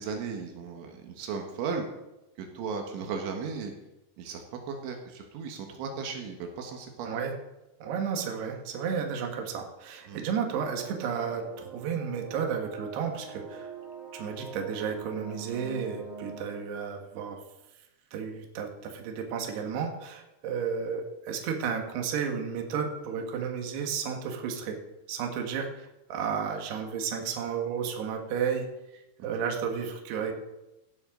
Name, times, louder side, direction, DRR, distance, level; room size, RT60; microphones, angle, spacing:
voice 1, 0.0-1.9 2.4-3.7 4.2-7.1 10.1-10.3 29.2-29.4, right 5 dB, 85° right, 3 dB, 3.9 m, -36 dB
voice 2, 7.1-7.4 7.8-13.7 14.1-17.4 18.1-24.8 25.1-28.7 28.9-30.3, right 6 dB, 65° right, 3 dB, 3.7 m, -32 dB
sound 1, 10.5-16.6, right 6 dB, 50° right, 5.2 m, -44 dB
16.5 x 12.5 x 3.9 m, 0.94 s
omnidirectional pair, 5.3 m